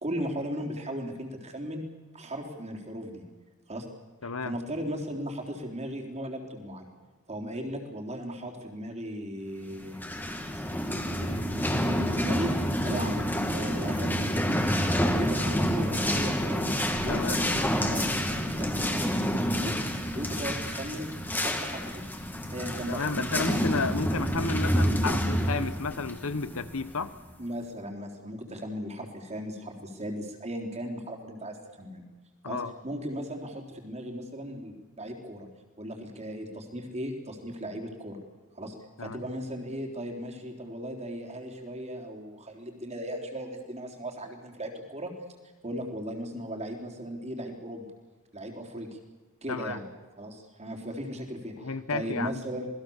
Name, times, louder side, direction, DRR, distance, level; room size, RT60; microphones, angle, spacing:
voice 1, 0.0-1.9 2.1-3.2 3.7-3.9 4.2-6.9 7.3-10.8 11.1-16.7 17.0-19.8 20.1-22.0 22.5-23.6 27.4-32.0 32.5-35.5 35.8-38.2 38.5-45.1 45.6-47.9 48.3-49.0 49.4-49.8 50.2-52.7, equal, 30° right, 2 dB, 3.9 m, -37 dB
voice 2, 4.2-4.5 11.2-11.5 17.1-17.4 22.9-27.1 32.4-32.7 39.0-39.2 49.5-49.8 51.6-52.3, left 4 dB, 65° left, 13 dB, 1.2 m, -32 dB
sound 1, 9.8-27.2, equal, 10° left, 2.3 m, -28 dB
27.5 x 20.0 x 7.3 m, 1.3 s
head